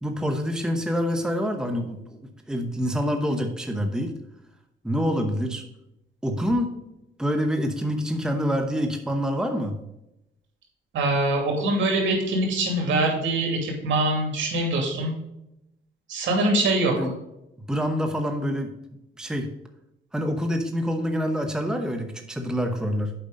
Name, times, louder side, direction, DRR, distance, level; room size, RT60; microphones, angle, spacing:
voice 1, 0.0-2.2 2.5-4.1 4.8-5.6 6.2-6.7 7.2-9.8 17.0-17.1 17.7-18.7 19.2-19.5 20.1-23.1, equal, 5° right, 5 dB, 0.9 m, -26 dB
voice 2, 10.9-15.1 16.1-17.0, right 2 dB, 75° right, 1 dB, 2.6 m, -23 dB
7.7 x 5.2 x 5.1 m, 0.87 s
cardioid pair, 90°, 20 cm